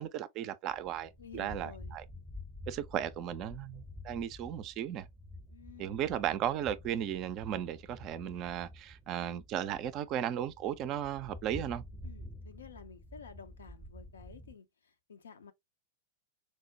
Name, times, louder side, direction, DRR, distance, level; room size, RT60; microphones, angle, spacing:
voice 1, 0.0-2.0 2.7-5.1 5.8-11.8, right 10 dB, 35° right, 0.4 m, -35 dB
sound 1, 0.7-14.5, left 1 dB, 5° right, 0.7 m, -49 dB
voice 2, 1.2-2.0 5.5-6.1 12.0-15.5, left 6 dB, 70° left, 0.5 m, -52 dB
4.5 x 2.1 x 2.7 m
figure-of-eight pair, 90°, 0 cm